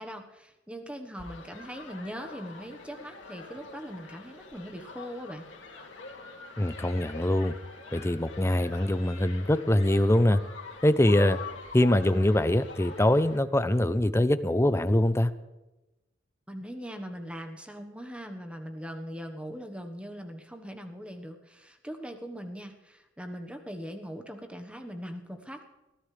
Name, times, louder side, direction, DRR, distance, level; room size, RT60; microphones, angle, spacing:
voice 1, 0.0-5.4 16.5-25.6, equal, 5° right, 4 dB, 1.3 m, -41 dB
sound 1, 1.1-13.4, left 4 dB, 90° left, 2.4 m, -45 dB
voice 2, 6.6-7.5 7.9-10.4 10.8-11.4 11.7-15.3, left 1 dB, 15° left, 13 dB, 0.6 m, -23 dB
22.0 x 15.0 x 3.4 m, 1.0 s
head